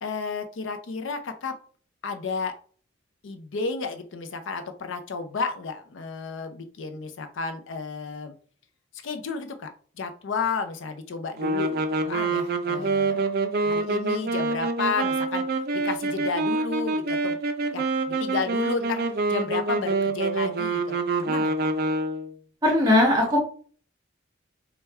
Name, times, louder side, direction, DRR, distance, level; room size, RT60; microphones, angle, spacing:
voice 1, 0.0-1.5 2.0-2.5 3.2-8.3 9.0-9.7 10.0-13.3 13.6-15.4 15.8-17.4 17.7-19.0 19.3-21.7, left 4 dB, 70° left, 7 dB, 0.5 m, -32 dB
sound 1, 11.4-22.4, right 3 dB, 50° right, 0.4 m, -26 dB
voice 2, 22.6-23.4, left 1 dB, 20° right, 0 dB, 1.0 m, -19 dB
3.5 x 2.2 x 4.2 m, 0.44 s
head